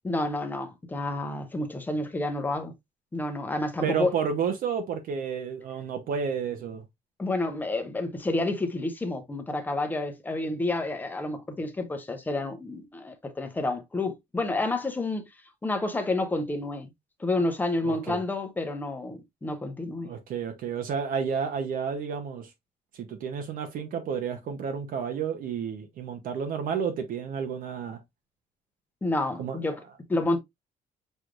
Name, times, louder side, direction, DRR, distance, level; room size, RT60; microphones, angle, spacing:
voice 1, 0.0-2.7 3.1-4.1 7.2-15.2 15.6-16.9 17.2-20.1 29.0-29.8 30.1-30.4, left 2 dB, 10° left, 0.7 m, -29 dB
voice 2, 3.8-6.8 17.8-18.2 20.0-22.5 22.9-28.0 29.4-29.6, right 6 dB, 65° right, 0.7 m, -31 dB
6.2 x 3.3 x 2.4 m
cardioid pair, 175°, 16 cm